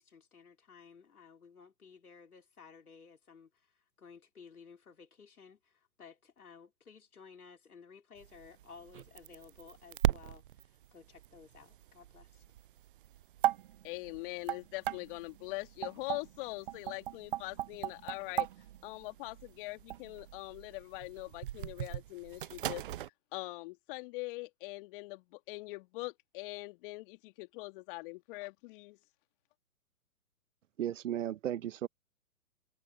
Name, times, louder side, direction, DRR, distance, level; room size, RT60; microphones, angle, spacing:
voice 1, 0.0-3.7 4.0-12.4, left 5 dB, 75° left, 4.3 m, -56 dB
sound 1, 8.2-23.1, right 13 dB, 40° right, 0.5 m, -38 dB
voice 2, 13.8-18.5 18.8-22.8 23.3-29.0, left 24 dB, 35° left, 2.7 m, -42 dB
voice 3, 30.8-31.9, right 11 dB, 55° right, 1.2 m, -35 dB
figure-of-eight pair, 120°, 44 cm